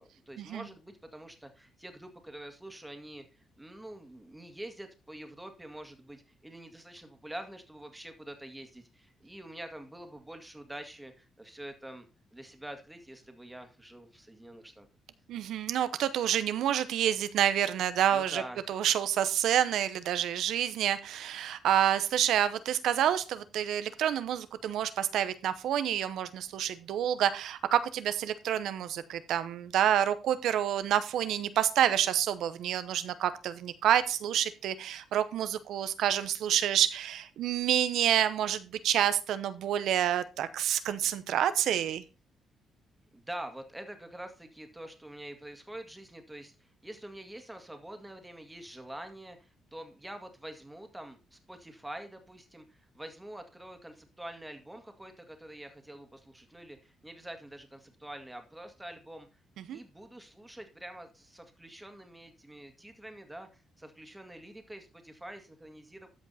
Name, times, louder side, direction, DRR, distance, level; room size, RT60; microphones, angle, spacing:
voice 1, 0.0-12.1 12.3-14.9 18.1-18.6 43.1-59.3 59.7-66.1, right 1 dB, 10° right, 6 dB, 2.0 m, -46 dB
voice 2, 15.3-18.4 18.7-42.0 59.7-59.8, right 10 dB, 80° right, 13 dB, 0.8 m, -28 dB
13.5 x 5.2 x 4.2 m, 0.32 s
cardioid pair, 90°, 0 cm